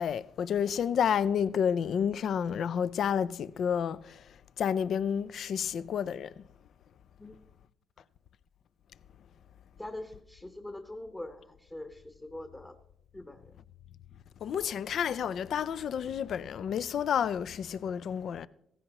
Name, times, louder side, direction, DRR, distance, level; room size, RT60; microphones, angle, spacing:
voice 1, 0.0-4.2 4.6-6.3 14.4-18.5, left 8 dB, 65° left, 0.4 m, -30 dB
voice 2, 9.8-12.8 13.1-13.5, left 1 dB, 15° left, 0.9 m, -43 dB
16.0 x 15.0 x 3.0 m
cardioid pair, 90°, 0 cm